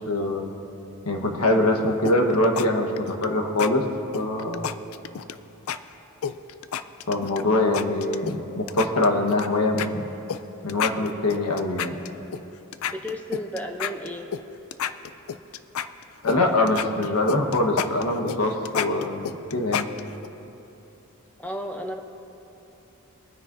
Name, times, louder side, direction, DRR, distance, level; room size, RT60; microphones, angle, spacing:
voice 1, 0.1-0.5 1.0-2.9 3.2-3.8 4.1-4.7 7.1-10.1 10.6-12.0 16.2-19.9, left 2 dB, 90° left, 2 dB, 1.3 m, -23 dB
sound 1, 2.1-2.7 3.0-3.3 3.6-3.7 4.1-5.4 5.7-5.8 6.2-7.4 7.7-8.4 8.7-9.5 9.8-9.9 10.3-10.4 10.7-12.4 12.7-14.4 14.7-16.4 16.7-20.3, left 8 dB, 70° left, 0.4 m, -30 dB
voice 2, 12.9-14.3 21.4-22.0, equal, 5° left, 3 dB, 0.7 m, -32 dB
23.0 x 9.7 x 2.7 m, 2.9 s
head